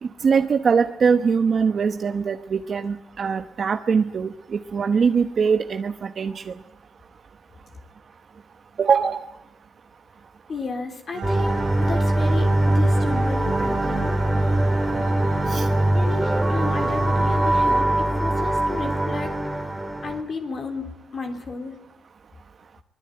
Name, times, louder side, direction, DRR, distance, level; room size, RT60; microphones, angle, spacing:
voice 1, 0.0-6.5 8.8-9.2 15.5-15.7, right 6 dB, 45° right, 7 dB, 1.0 m, -22 dB
voice 2, 10.5-14.1 15.9-19.4 20.0-21.8, left 4 dB, 40° left, 4 dB, 3.4 m, -33 dB
sound 1, 11.1-17.8, right 7 dB, 85° right, 2.9 m, -36 dB
sound 2, 11.2-20.2, right 1 dB, 5° right, 3.0 m, -22 dB
23.5 x 21.5 x 8.9 m, 0.87 s
cardioid pair, 130°, 0 cm